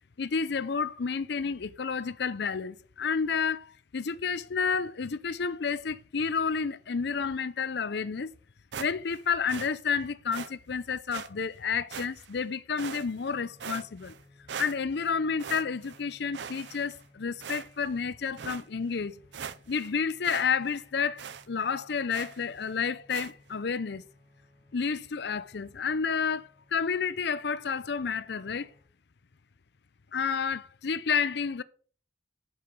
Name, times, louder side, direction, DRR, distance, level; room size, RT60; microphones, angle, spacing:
voice 1, 0.2-8.3 8.8-14.1 14.6-19.2 19.7-24.1 24.7-28.7 30.1-31.6, left 6 dB, 70° left, 0.6 m, -30 dB
sound 1, 8.7-9.2 9.5-9.7 10.3-10.5 11.1-11.3 11.9-12.4 12.8-13.3 13.6-14.2 14.5-15.1 15.4-16.0 16.3-17.0 17.4-17.9 18.4-18.6 19.0-19.1 19.3-19.9 20.2-20.5 20.7-20.8 21.2-21.5 22.1-22.4 23.1-23.3, right 7 dB, 70° right, 0.6 m, -40 dB
sound 2, 12.7-28.8, left 2 dB, 35° right, 1.9 m, -61 dB
6.7 x 5.6 x 6.8 m
head